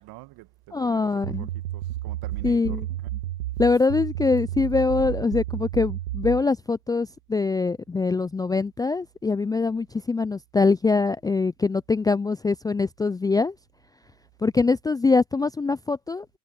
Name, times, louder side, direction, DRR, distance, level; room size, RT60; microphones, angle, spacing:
voice 1, 0.0-3.1, right 20 dB, 55° right, 2.2 m, -46 dB
voice 2, 0.7-1.5 2.4-2.9 3.6-13.5 14.4-16.3, left 4 dB, 10° left, 0.5 m, -23 dB
sound 1, 1.2-6.4, right 14 dB, 75° right, 2.2 m, -31 dB
hypercardioid pair, 85°, 44 cm